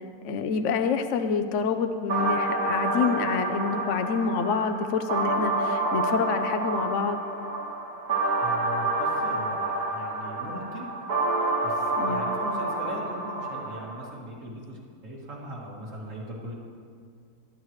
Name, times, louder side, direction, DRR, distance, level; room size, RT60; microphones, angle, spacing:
voice 1, 0.2-7.2 12.0-12.2, left 5 dB, 60° left, 7 dB, 0.9 m, -27 dB
sound 1, 2.1-14.1, right 2 dB, 75° right, 2.2 m, -28 dB
voice 2, 8.4-10.9 11.6-16.5, equal, 50° right, -4 dB, 2.9 m, -40 dB
23.5 x 11.0 x 3.2 m, 2.2 s
omnidirectional pair, 1.7 m